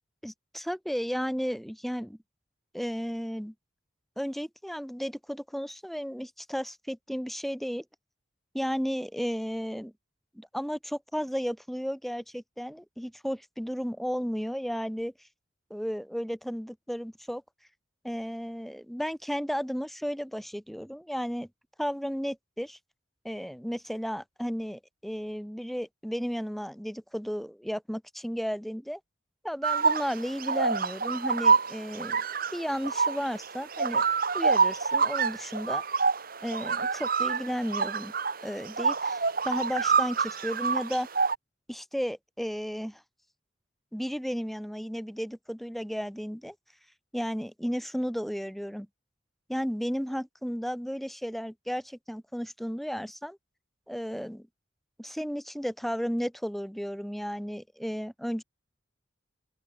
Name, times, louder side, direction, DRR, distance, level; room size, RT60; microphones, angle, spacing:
voice 1, 0.2-2.2 2.7-3.5 4.2-7.8 8.5-9.9 10.3-15.1 15.7-17.4 18.0-21.5 21.8-22.8 23.2-29.0 29.4-32.2 32.5-34.1 34.3-35.8 36.4-38.1 38.4-41.1 41.7-43.0 43.9-46.5 47.1-48.9 49.5-53.4 53.9-54.5 55.0-58.4, equal, ahead, 3.2 m, -33 dB
sound 1, 29.6-41.3, right 5 dB, 50° right, 2.4 m, -27 dB
open air
head